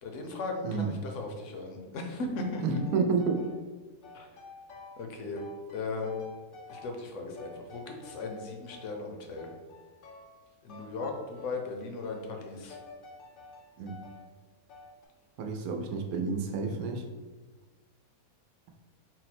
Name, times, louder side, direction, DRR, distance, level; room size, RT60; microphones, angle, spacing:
voice 1, 0.0-2.6 4.1-4.3 5.0-5.4 5.7-6.2 6.7-9.5 10.6-12.8, left 3 dB, 65° left, 3 dB, 0.9 m, -37 dB
sound 1, 2.3-3.6 4.0-5.1 5.4-7.1 7.4-8.9 9.4-10.4 10.7-11.7 12.0-12.3 12.7-14.3 14.7-15.1, left 3 dB, 80° left, 0.4 m, -50 dB
voice 2, 2.6-3.4 13.8-13.9 15.4-17.0, right 4 dB, 85° right, 3 dB, 1.1 m, -29 dB
4.3 x 2.2 x 4.1 m, 1.3 s
omnidirectional pair, 1.5 m